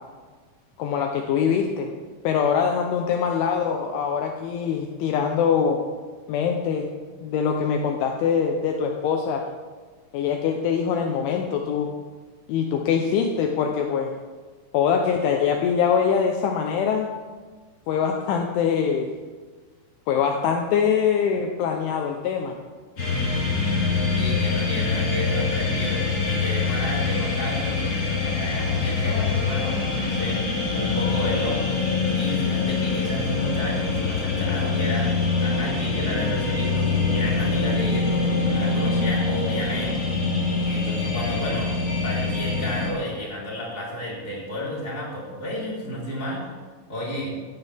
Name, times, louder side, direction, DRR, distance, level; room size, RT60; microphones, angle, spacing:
voice 1, 0.8-1.9 2.2-5.8 6.3-6.9 7.2-9.4 10.1-11.9 12.5-14.1 14.7-17.1 17.9-19.1 20.1-22.5, left 7 dB, 75° left, 3 dB, 3.1 m, -23 dB
sound 1, 23.0-42.9, left 4 dB, 35° left, 4.6 m, -24 dB
voice 2, 24.1-30.4 30.7-31.7 32.1-35.1 35.4-40.1 40.6-41.7 42.0-46.4 46.9-47.4, left 1 dB, 15° left, -6 dB, 4.1 m, -32 dB
17.5 x 16.0 x 3.6 m, 1.4 s
omnidirectional pair, 5.9 m